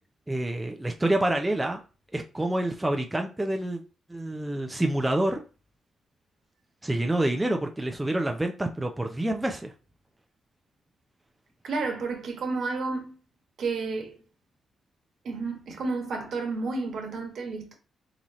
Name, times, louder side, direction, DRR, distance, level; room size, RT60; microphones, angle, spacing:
voice 1, 0.3-1.8 2.1-3.8 4.1-5.4 6.8-9.7, right 1 dB, 10° right, 0.5 m, -27 dB
voice 2, 11.6-13.1 13.6-14.2 15.2-17.7, right 3 dB, 65° right, 1.2 m, -31 dB
3.8 x 2.7 x 3.0 m
cardioid pair, 100°, 0 cm